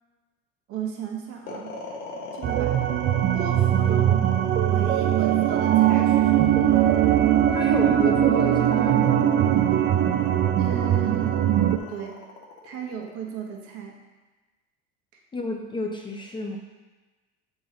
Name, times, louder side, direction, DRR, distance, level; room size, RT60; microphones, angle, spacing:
voice 1, 0.7-1.7 2.3-2.8 3.3-4.3 4.6-6.6 10.5-11.2 11.9-12.2 12.6-14.0, right 7 dB, 55° right, 1 dB, 1.2 m, -35 dB
sound 1, 1.5-13.7, left 4 dB, 70° left, 1.5 m, -40 dB
sound 2, 2.4-11.8, right 11 dB, 35° right, 0.4 m, -20 dB
voice 2, 7.5-9.4 15.3-16.6, left 2 dB, 15° left, 1 dB, 0.5 m, -31 dB
8.2 x 3.9 x 3.9 m, 1.2 s
cardioid pair, 120°, 29 cm